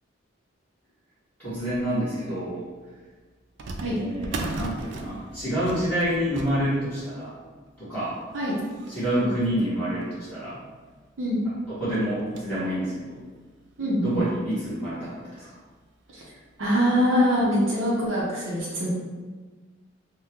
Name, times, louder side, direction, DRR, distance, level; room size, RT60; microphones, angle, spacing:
voice 1, 1.4-2.6 3.8-7.3 7.8-8.2 8.9-10.6 11.8-13.2 14.0-15.6, equal, 10° left, -16 dB, 1.2 m, -28 dB
sound 1, 3.6-10.5 11.1-11.2 11.4-11.5 11.9-12.7 13.2-13.3 14.1-14.2 14.6-14.7 16.1-16.3 16.7-16.8 17.5-17.6, right 2 dB, 60° right, 0.3 m, -39 dB
voice 2, 13.8-14.2 16.1-16.2 16.6-18.9, equal, 80° right, -6 dB, 0.7 m, -24 dB
3.5 x 2.2 x 2.9 m, 1.4 s
head